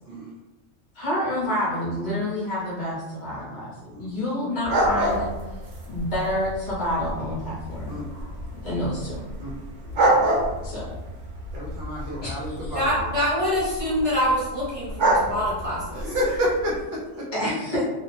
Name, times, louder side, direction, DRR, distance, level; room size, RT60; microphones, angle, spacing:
voice 1, 0.9-5.3 5.9-8.0 8.6-9.3 10.6-10.9 12.2-12.8 17.3-17.8, left 1 dB, 45° left, -7 dB, 0.8 m, -28 dB
sound 1, 4.6-16.8, right 1 dB, 80° right, 1.0 m, -28 dB
voice 2, 11.5-13.1 15.9-17.3, equal, 60° right, -5 dB, 1.0 m, -29 dB
voice 3, 12.7-16.1, equal, 40° right, -7 dB, 0.5 m, -25 dB
2.6 x 2.0 x 2.8 m, 1.1 s
omnidirectional pair, 1.2 m